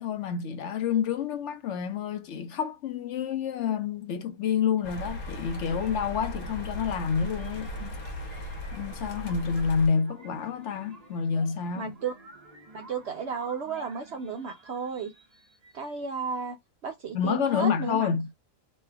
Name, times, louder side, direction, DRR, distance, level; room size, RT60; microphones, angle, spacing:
voice 1, 0.0-8.0 8.3-11.9 17.1-18.3, left 7 dB, 65° left, 0.8 m, -28 dB
sound 1, 4.8-9.9, equal, 80° left, 1.4 m, -37 dB
sound 2, 5.6-16.2, right 2 dB, 30° right, 0.9 m, -52 dB
voice 2, 11.7-12.1 12.7-15.1 15.7-16.6 16.8-18.1, right 5 dB, 60° right, 0.8 m, -33 dB
3.3 x 2.2 x 3.3 m
omnidirectional pair, 1.5 m